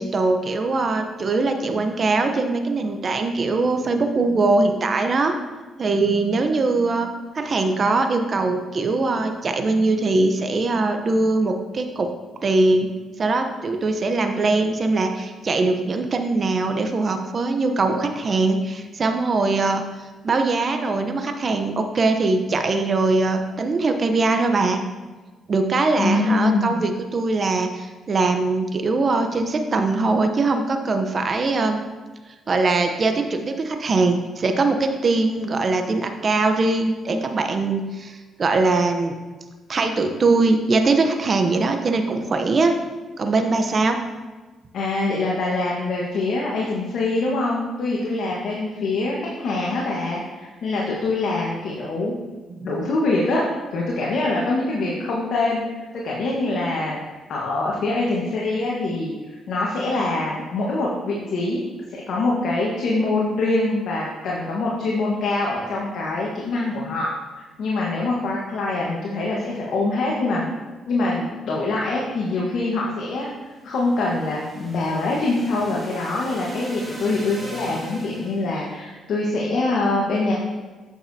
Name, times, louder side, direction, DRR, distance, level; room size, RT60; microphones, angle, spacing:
voice 1, 0.0-5.3 5.8-7.1 7.3-12.1 12.4-12.9 13.2-19.8 20.2-24.8 25.5-31.8 32.5-39.2 39.7-42.7 43.2-44.0 52.6-52.7, right 3 dB, 45° right, 5 dB, 0.8 m, -21 dB
voice 2, 26.0-26.8 44.7-52.1 52.6-53.4 53.7-55.6 55.9-57.0 57.3-59.1 59.5-67.1 67.6-70.4 70.9-73.3 73.6-80.3, left 2 dB, 70° left, -4 dB, 1.3 m, -24 dB
sound 1, 73.6-78.5, right 1 dB, 10° right, 2.3 m, -41 dB
8.9 x 6.5 x 2.8 m, 1.3 s
cardioid pair, 75°, 0 cm